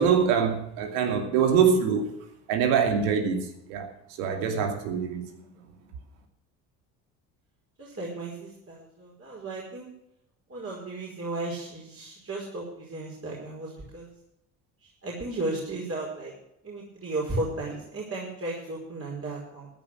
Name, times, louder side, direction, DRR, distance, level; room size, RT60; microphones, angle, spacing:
voice 1, 0.0-2.0 2.5-3.9 4.2-5.4, right 7 dB, 85° right, 2.7 m, -24 dB
voice 2, 7.8-9.9 10.5-14.1 14.8-16.3 16.6-19.7, right 2 dB, 30° right, 5.0 m, -35 dB
13.5 x 10.5 x 6.3 m
hypercardioid pair, 70°, 43 cm